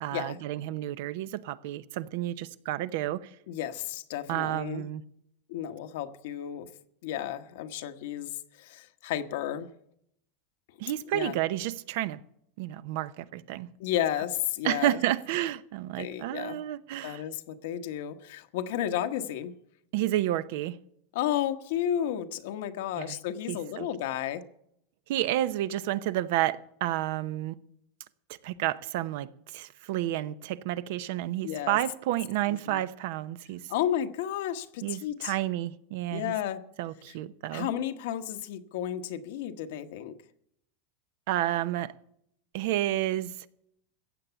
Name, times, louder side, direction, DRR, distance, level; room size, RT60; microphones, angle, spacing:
voice 1, 0.0-3.3 4.3-5.0 10.8-12.2 12.6-13.7 14.6-17.2 19.9-20.8 23.0-23.2 23.5-23.9 25.1-27.6 28.4-33.7 34.8-36.3 36.8-37.7 41.3-41.9 42.5-43.3, right 14 dB, 65° right, 0.7 m, -30 dB
voice 2, 3.5-4.8 5.5-6.7 7.0-9.7 11.1-11.3 13.8-15.0 16.0-16.6 17.0-19.5 21.1-24.4 31.4-31.8 32.7-32.8 33.7-35.3 36.1-36.6 37.5-40.1, left 11 dB, 70° left, 1.1 m, -32 dB
15.0 x 7.9 x 6.9 m
supercardioid pair, 130°, 0 cm